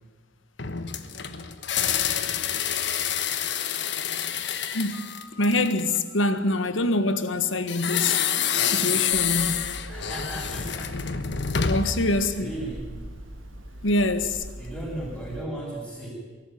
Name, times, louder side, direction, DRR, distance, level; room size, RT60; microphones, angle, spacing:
sound 1, 0.6-6.0 7.7-12.0, left 8 dB, 60° left, 1.3 m, -27 dB
voice 1, 4.7-8.2 8.6-9.7 11.6-12.5 13.8-14.4, left 2 dB, 80° left, 1.5 m, -25 dB
Hammer, 9.1-15.5, equal, 90° right, 1.7 m, -41 dB
voice 2, 9.9-11.0 11.6-12.1 12.3-12.9 14.6-16.1, right 1 dB, 5° left, 7.7 m, -36 dB
23.0 x 13.5 x 9.3 m
head